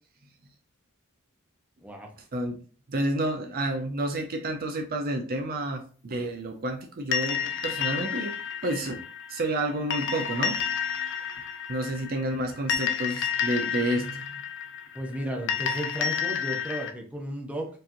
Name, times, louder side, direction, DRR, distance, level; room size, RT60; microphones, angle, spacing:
voice 1, 2.2-2.6 2.9-8.3 8.6-9.0 9.3-10.6 11.7-14.3, right 1 dB, 45° right, 4 dB, 0.5 m, -30 dB
sound 1, 7.1-16.9, left 8 dB, 55° left, 0.6 m, -31 dB
voice 2, 14.9-17.7, equal, 5° right, 0 dB, 0.7 m, -34 dB
4.6 x 2.9 x 2.5 m, 0.41 s
head